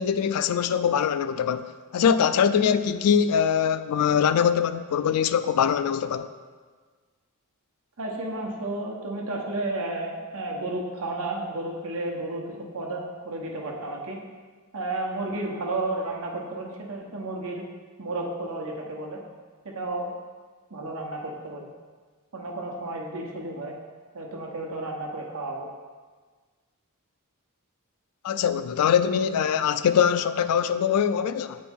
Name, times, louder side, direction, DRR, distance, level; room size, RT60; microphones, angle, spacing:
voice 1, 0.0-6.3 28.2-31.6, left 7 dB, 80° left, 0.3 m, -23 dB
voice 2, 8.0-14.2 14.7-17.6 18.0-19.2 19.6-20.1 20.7-21.7 22.3-23.8 24.1-25.7, right 2 dB, 70° right, 1.0 m, -32 dB
8.3 x 4.4 x 3.6 m
head